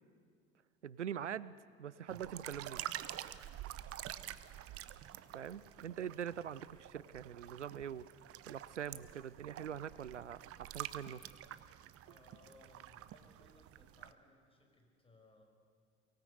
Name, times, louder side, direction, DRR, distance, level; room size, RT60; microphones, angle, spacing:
voice 1, 0.8-2.9 5.3-11.2, right 9 dB, 85° right, 20 dB, 0.5 m, -44 dB
sound 1, 2.1-14.1, right 13 dB, 40° right, 0.9 m, -48 dB
voice 2, 3.8-4.1 12.0-15.4, left 2 dB, 15° left, 3 dB, 5.1 m, -65 dB
23.5 x 18.0 x 8.1 m, 2.1 s
figure-of-eight pair, 60°, 34 cm